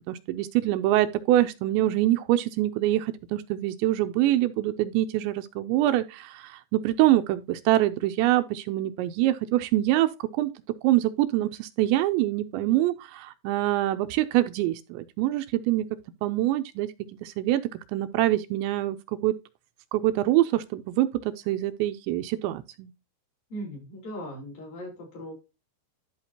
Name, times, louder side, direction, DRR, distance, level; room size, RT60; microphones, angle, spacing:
voice 1, 0.1-10.5 10.8-15.9 16.2-16.9 17.2-17.6 17.9-19.4 19.9-22.9, right 15 dB, 80° right, 2.8 m, -25 dB
voice 2, 23.5-25.3, equal, 50° left, 5.8 m, -38 dB
12.5 x 5.8 x 2.8 m
omnidirectional pair, 5.3 m